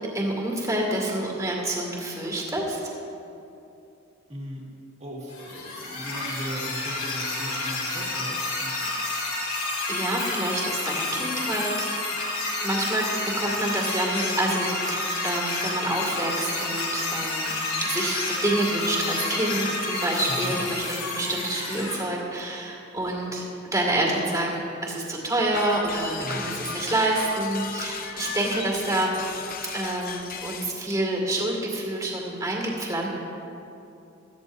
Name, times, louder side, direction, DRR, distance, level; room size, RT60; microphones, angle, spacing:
voice 1, 0.1-2.8 9.9-11.9 12.6-13.1 13.4-23.4 23.7-29.2 29.7-33.1, right 1 dB, 15° right, -2 dB, 2.2 m, -27 dB
voice 2, 4.3-4.6 5.0-8.9 20.3-20.6 26.2-26.5, equal, 30° right, -3 dB, 2.0 m, -37 dB
sound 1, 5.3-22.0, left 2 dB, 85° left, 2.7 m, -29 dB
sound 2, 25.5-30.8, left 5 dB, 45° left, 0.7 m, -36 dB
17.0 x 13.5 x 2.7 m, 2.8 s
head